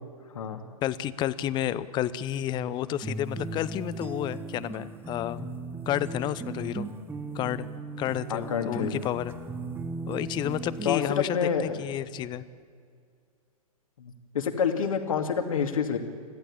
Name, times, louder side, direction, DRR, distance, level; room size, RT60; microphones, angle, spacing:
voice 1, 0.8-5.4 5.9-6.9 7.3-7.7 8.0-9.3 10.1-12.4, left 12 dB, 25° left, 17 dB, 0.8 m, -30 dB
sound 1, 3.0-11.0, right 3 dB, 10° right, 1.2 m, -37 dB
voice 2, 8.3-8.9 10.8-11.8 14.0-16.0, left 6 dB, 65° left, 6 dB, 2.4 m, -28 dB
25.0 x 15.0 x 8.7 m, 2.1 s
figure-of-eight pair, 115°, 19 cm